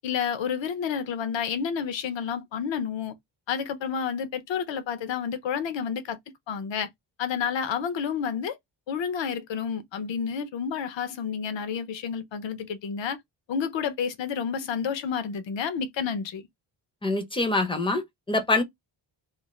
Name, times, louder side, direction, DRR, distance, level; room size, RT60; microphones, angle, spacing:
voice 1, 0.0-3.1 3.5-6.2 6.5-6.9 7.2-8.6 8.9-13.2 13.5-16.5, left 7 dB, 75° left, 0.8 m, -30 dB
voice 2, 17.0-18.6, left 2 dB, 10° left, 0.6 m, -25 dB
2.5 x 2.4 x 3.0 m
wide cardioid pair, 155°, 45 cm